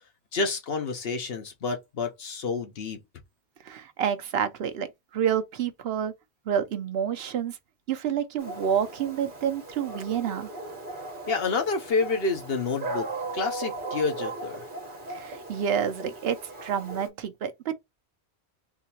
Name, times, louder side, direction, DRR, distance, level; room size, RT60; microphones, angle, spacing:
voice 1, 0.3-3.0 11.3-13.1 13.3-14.6, left 4 dB, 65° left, 1.1 m, -29 dB
voice 2, 3.6-6.1 6.5-7.6 7.9-10.5 15.1-17.7, right 8 dB, 70° right, 0.9 m, -29 dB
Dog, 8.4-17.1, right 2 dB, 50° right, 1.4 m, -37 dB
3.8 x 2.8 x 2.8 m
omnidirectional pair, 1.1 m